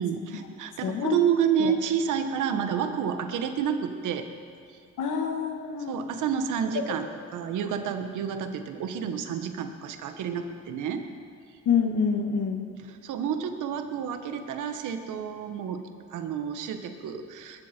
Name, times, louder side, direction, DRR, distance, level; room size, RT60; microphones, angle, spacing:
voice 1, 0.0-4.2 4.7-4.8 5.9-11.0 12.8-15.8 16.1-17.6, right 8 dB, 85° right, 7 dB, 1.4 m, -29 dB
voice 2, 0.8-1.2 1.6-1.7 2.5-2.6 5.0-6.0 6.8-6.9 11.7-12.7, left 6 dB, 80° left, 3 dB, 2.0 m, -27 dB
21.0 x 14.0 x 4.5 m, 2.2 s
cardioid pair, 90°, 30 cm